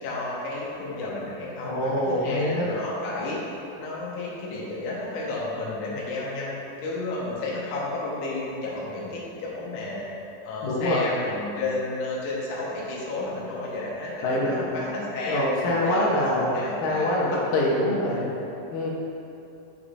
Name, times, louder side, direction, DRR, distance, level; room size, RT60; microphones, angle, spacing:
voice 1, 0.0-3.4 3.8-6.5 6.8-10.1 10.4-15.4 15.7-17.2 18.1-18.4, left 2 dB, 60° left, -6 dB, 1.9 m, -32 dB
voice 2, 1.6-2.7 10.6-11.1 14.2-14.8 15.3-18.3 18.7-18.9, left 1 dB, 80° left, -4 dB, 2.5 m, -25 dB
7.0 x 6.5 x 2.5 m, 2.9 s
omnidirectional pair, 3.9 m